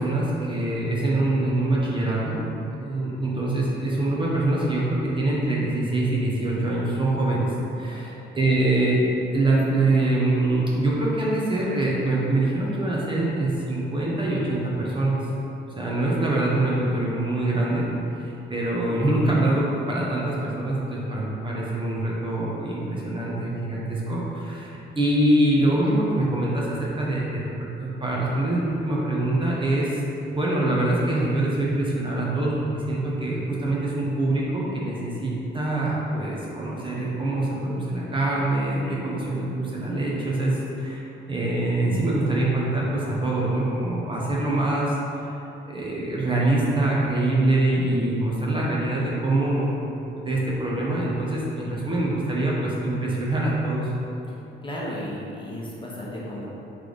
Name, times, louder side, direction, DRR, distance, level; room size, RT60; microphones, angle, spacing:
voice 1, 0.0-7.5 7.8-9.0 9.3-15.2 15.8-17.9 18.2-30.0 30.3-41.0 41.3-45.3 45.7-49.7 50.1-53.9, right 2 dB, 25° right, -5 dB, 0.8 m, -24 dB
voice 2, 54.6-56.5, left 1 dB, 25° left, -6 dB, 0.9 m, -34 dB
3.3 x 3.2 x 3.9 m, 3.0 s
cardioid pair, 90°, 20 cm